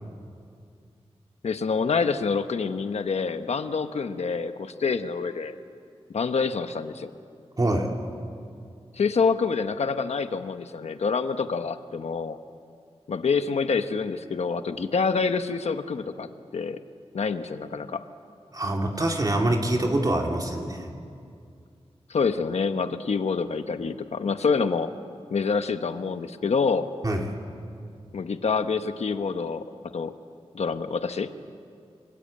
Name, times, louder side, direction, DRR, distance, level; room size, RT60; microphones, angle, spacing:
voice 1, 1.4-5.6 6.1-7.1 8.9-12.4 13.1-16.8 17.1-18.0 22.1-24.9 25.3-26.9 28.1-29.7 29.9-30.1 30.5-31.3, left 5 dB, 90° left, 9 dB, 1.1 m, -27 dB
voice 2, 7.6-7.9 18.5-20.9 27.0-27.3, right 1 dB, 35° right, 1 dB, 2.8 m, -25 dB
30.0 x 23.0 x 8.6 m, 2.3 s
wide cardioid pair, 105°, 11 cm